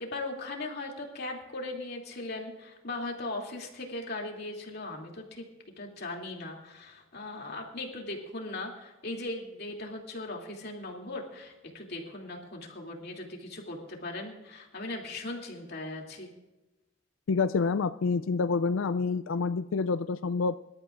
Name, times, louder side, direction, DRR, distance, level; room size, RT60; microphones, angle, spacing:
voice 1, 0.0-5.4 5.8-16.3, left 2 dB, 50° left, 1 dB, 2.8 m, -38 dB
voice 2, 17.3-20.6, left 4 dB, 70° left, 12 dB, 0.4 m, -27 dB
25.0 x 13.0 x 2.5 m, 1.0 s
head